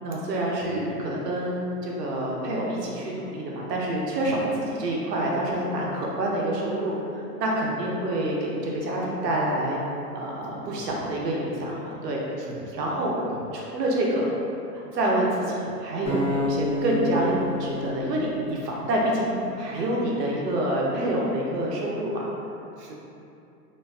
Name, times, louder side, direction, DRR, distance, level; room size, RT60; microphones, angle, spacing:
voice 1, 0.0-9.8 10.1-12.3 12.8-13.2 13.5-14.3 14.7-22.2, right 1 dB, 90° right, -3 dB, 0.7 m, -27 dB
voice 2, 0.6-0.9 10.7-11.4 12.4-12.9 13.3-13.5 22.8-22.9, right 2 dB, 50° right, -2 dB, 0.5 m, -43 dB
sound 1, 16.0-19.2, left 1 dB, 30° left, 0.7 m, -30 dB
2.5 x 2.1 x 2.3 m, 2.7 s
hypercardioid pair, 135°, 47 cm